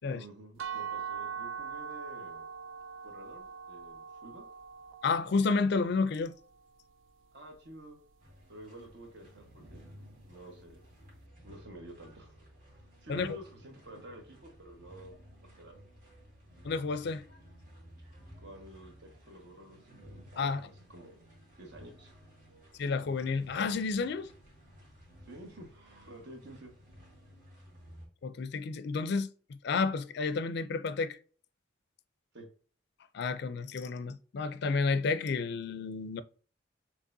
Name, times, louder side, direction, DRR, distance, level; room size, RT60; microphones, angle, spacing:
voice 1, 0.0-2.5 3.0-4.4 7.3-8.0 8.5-9.8 10.2-10.8 11.4-12.4 12.7-15.1 15.6-15.8 18.4-21.2 21.6-22.2 25.3-26.7 32.3-32.5, right 1 dB, 60° right, 1.3 m, -50 dB
sound 1, 0.6-6.4, right 7 dB, 80° right, 0.4 m, -42 dB
voice 2, 5.0-6.3 13.1-13.4 16.6-17.2 20.4-20.6 22.8-24.3 28.2-31.2 33.1-36.2, left 4 dB, 55° left, 0.4 m, -31 dB
sound 2, 8.2-28.1, equal, 45° right, 2.1 m, -55 dB
6.5 x 2.9 x 2.6 m
head